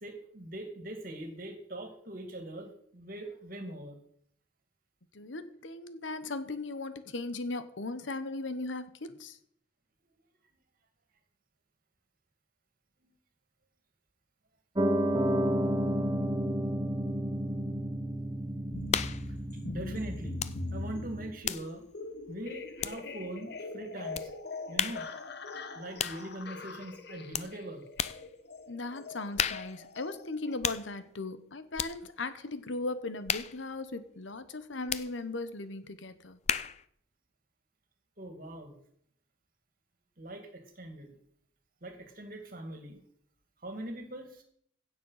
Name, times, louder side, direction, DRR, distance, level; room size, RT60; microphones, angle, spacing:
voice 1, 0.0-4.0 13.0-13.1 19.3-19.4 19.6-20.4 20.7-21.8 22.3-24.3 24.7-25.1 25.8-27.8 38.2-38.8 40.2-41.2 41.8-43.0 43.6-44.4, right 1 dB, 45° right, 5 dB, 2.3 m, -42 dB
voice 2, 5.1-9.4 28.7-36.4, left 2 dB, 80° left, 12 dB, 1.1 m, -38 dB
Piano, 14.8-21.3, right 1 dB, 20° right, 0.8 m, -31 dB
sound 1, 18.7-30.5, left 3 dB, 55° left, 1.1 m, -42 dB
sound 2, 18.9-19.3 20.4-20.6 20.9-23.3 24.1-24.3 24.8-25.1 26.0-26.3 27.3-27.5 28.0-28.3 29.4-29.8 30.6-30.9 31.7-32.0 33.3-33.6 34.9-35.1 36.5-36.8, left 8 dB, 35° left, 0.5 m, -33 dB
16.0 x 7.4 x 5.7 m, 0.67 s
head